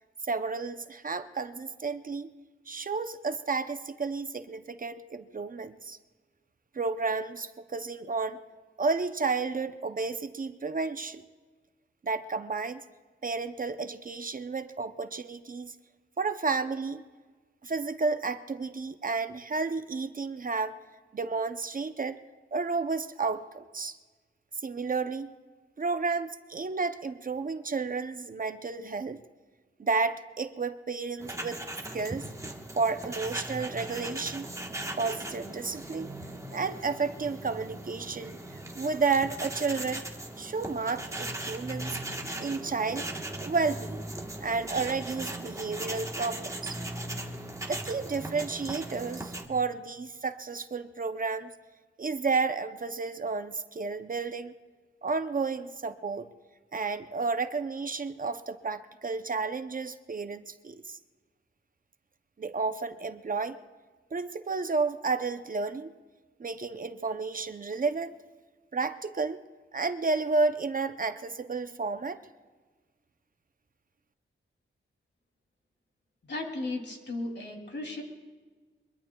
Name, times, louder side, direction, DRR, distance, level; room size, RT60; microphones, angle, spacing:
voice 1, 0.2-2.3 2.7-6.0 6.7-8.4 8.8-11.2 12.0-12.8 13.2-15.7 16.2-17.0 17.6-20.8 21.1-22.2 22.5-24.0 24.6-25.3 25.8-29.2 29.8-31.6 31.9-32.3 32.8-34.5 35.0-36.1 36.5-40.0 40.4-41.9 42.4-43.1 43.4-44.1 44.4-46.8 47.7-51.5 52.0-54.5 55.0-56.3 56.7-61.0 62.4-63.6 64.1-65.9 66.4-68.2 68.7-69.4 69.7-72.2, right 4 dB, 40° right, 10 dB, 0.6 m, -31 dB
sound 1, 31.2-49.5, right 1 dB, 15° right, 1.3 m, -38 dB
voice 2, 76.3-78.0, left 2 dB, 60° left, 2 dB, 2.8 m, -35 dB
23.5 x 22.0 x 2.3 m, 1.4 s
wide cardioid pair, 115°, 21 cm